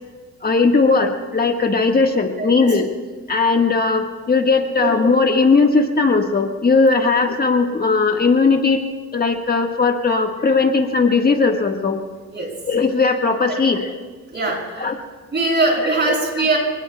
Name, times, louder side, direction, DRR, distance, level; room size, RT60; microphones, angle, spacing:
voice 1, 0.4-2.9 3.3-8.8 9.1-12.0 12.7-13.9 14.8-15.0 16.1-16.2, left 4 dB, 30° left, 3 dB, 1.5 m, -18 dB
voice 2, 14.3-14.6 15.3-16.6, right 3 dB, 35° right, -1 dB, 6.5 m, -20 dB
27.5 x 20.0 x 2.3 m, 1.4 s
cardioid pair, 90°, 30 cm